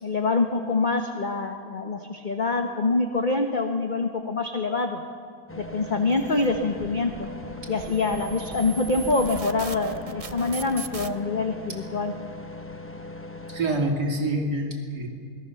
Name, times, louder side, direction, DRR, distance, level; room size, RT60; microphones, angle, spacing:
voice 1, 0.0-5.0 5.6-7.3 7.7-12.1, left 3 dB, 30° left, 5 dB, 1.2 m, -25 dB
sound 1, 5.5-13.9, left 2 dB, 10° left, 0.6 m, -40 dB
sound 2, 6.1-11.1, right 4 dB, 35° right, 0.6 m, -39 dB
voice 2, 13.5-15.1, right 1 dB, 90° right, 1 dB, 3.3 m, -26 dB
27.5 x 21.0 x 7.0 m, 2.1 s
omnidirectional pair, 1.7 m